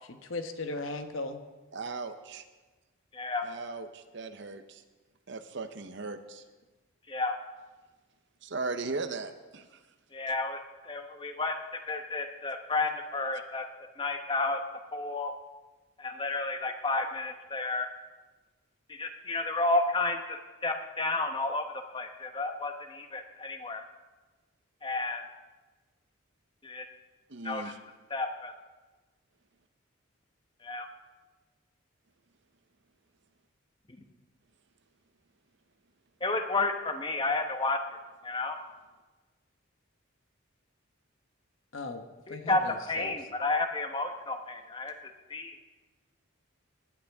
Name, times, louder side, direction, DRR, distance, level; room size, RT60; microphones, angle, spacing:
voice 1, 0.1-1.4 41.7-42.0 42.3-43.1, left 2 dB, 70° left, 7 dB, 1.1 m, -37 dB
voice 2, 1.7-2.4 3.4-4.8 5.3-6.4 8.4-9.7 27.3-27.8, right 3 dB, 55° right, 9 dB, 0.8 m, -37 dB
voice 3, 3.1-3.5 7.1-7.3 10.1-13.7 14.0-14.6 14.9-15.3 16.0-17.9 18.9-23.8 24.8-25.2 26.6-26.9 27.4-27.7 28.1-28.5 30.6-30.9 36.2-37.8 38.2-38.6 42.3-44.9 45.3-45.5, left 3 dB, 25° left, 6 dB, 1.0 m, -31 dB
19.0 x 11.5 x 3.6 m, 1.2 s
head